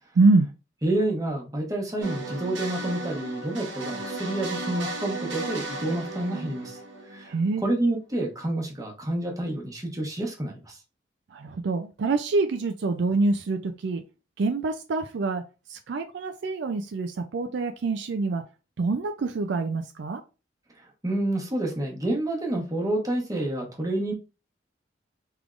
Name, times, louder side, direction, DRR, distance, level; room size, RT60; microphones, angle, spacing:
voice 1, 0.2-0.5 7.3-7.6 11.3-14.0 14.4-15.4 15.7-18.4 18.8-20.2, right 3 dB, 70° right, 0.4 m, -25 dB
voice 2, 0.8-7.3 7.6-10.8 20.8-24.1, right 1 dB, 20° right, 1.0 m, -29 dB
sound 1, 2.0-7.8, right 2 dB, 85° right, 1.0 m, -35 dB
3.5 x 3.4 x 2.4 m
head